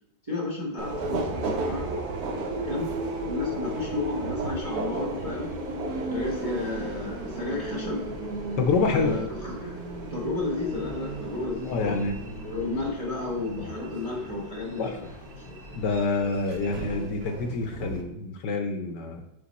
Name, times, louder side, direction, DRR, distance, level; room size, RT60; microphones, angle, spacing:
voice 1, 0.3-1.9 2.6-2.9 3.2-5.5 6.1-8.1 8.8-9.8 10.1-12.0 12.4-15.0 15.5-15.7, left 2 dB, 25° right, -3 dB, 0.8 m, -33 dB
Subway metro underground, 0.8-18.0, right 2 dB, 60° right, 1.1 m, -34 dB
sound 1, 3.3-16.1, left 2 dB, 15° left, 1.0 m, -49 dB
voice 2, 8.6-9.2 11.7-12.1 14.8-15.0 15.8-19.2, left 4 dB, 70° left, 4 dB, 1.2 m, -27 dB
5.2 x 5.1 x 4.0 m, 0.89 s
omnidirectional pair, 2.1 m